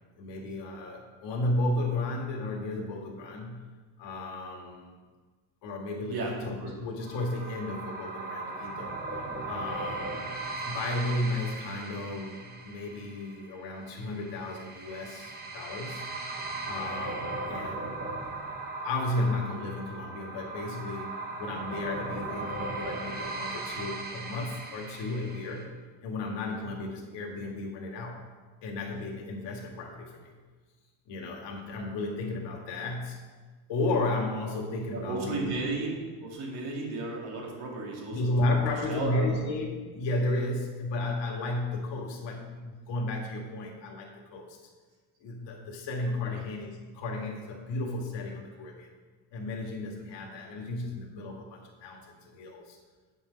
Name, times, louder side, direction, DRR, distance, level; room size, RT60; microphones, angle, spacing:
voice 1, 0.2-3.7 4.0-4.9 5.6-9.0 9.4-10.2 10.6-16.0 16.6-18.2 18.8-25.7 26.0-28.2 28.6-30.3 31.1-33.2 33.7-35.6 38.1-44.6 45.2-48.9 49.3-52.8, left 2 dB, 70° left, 0 dB, 2.0 m, -33 dB
sound 1, 7.0-25.6, right 2 dB, 20° right, 0.9 m, -38 dB
voice 2, 34.9-38.6 38.9-39.4 46.3-46.4, right 3 dB, 60° right, -1 dB, 2.3 m, -34 dB
9.1 x 5.9 x 5.2 m, 1.4 s
cardioid pair, 160°, 44 cm